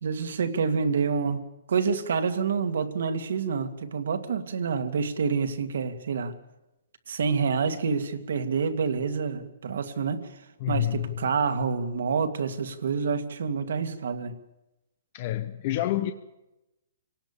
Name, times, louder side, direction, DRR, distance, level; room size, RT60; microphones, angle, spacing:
voice 1, 0.0-6.3 7.1-10.3 10.7-14.4, right 5 dB, 70° right, 2.3 m, -27 dB
voice 2, 10.6-11.3 15.1-16.1, left 13 dB, 35° left, 1.0 m, -28 dB
26.5 x 18.5 x 7.1 m
hypercardioid pair, 165°, 0 cm